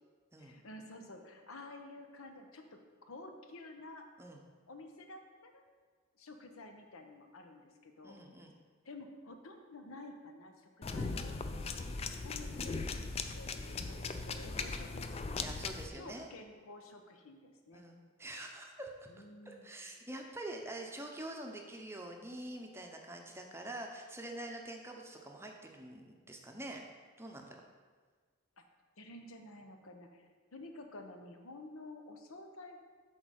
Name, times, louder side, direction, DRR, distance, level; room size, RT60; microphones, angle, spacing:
voice 1, 0.4-4.1 4.7-5.7 6.2-8.2 8.8-15.4 15.9-17.8 19.1-19.7 29.0-32.8, left 2 dB, 85° left, 5 dB, 0.9 m, -51 dB
voice 2, 8.0-8.5 13.7-13.9 15.4-16.3 17.7-19.1 19.5-26.8 27.2-27.6, right 1 dB, 10° right, 2 dB, 0.6 m, -46 dB
sound 1, 10.8-15.9, left 4 dB, 30° left, 0.3 m, -39 dB
8.1 x 4.0 x 6.3 m, 1.5 s
head